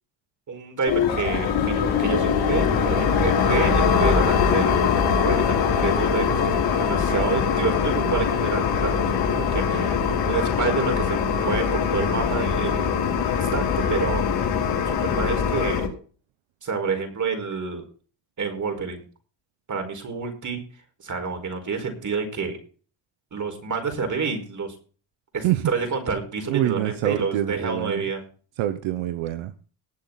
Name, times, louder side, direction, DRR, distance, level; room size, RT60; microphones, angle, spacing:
voice 1, 0.5-4.7 5.2-10.0 10.2-14.2 14.9-15.8 16.6-17.8 18.4-19.0 19.7-20.6 21.0-22.6 23.3-24.7 25.3-28.2, right 5 dB, 40° right, 5 dB, 4.8 m, -28 dB
sound 1, 0.9-15.9, left 6 dB, 65° left, 5.6 m, -22 dB
voice 2, 26.5-28.0 28.6-29.7, right 13 dB, 85° right, 11 dB, 1.1 m, -25 dB
19.5 x 7.9 x 4.0 m, 0.39 s
cardioid pair, 115°, 47 cm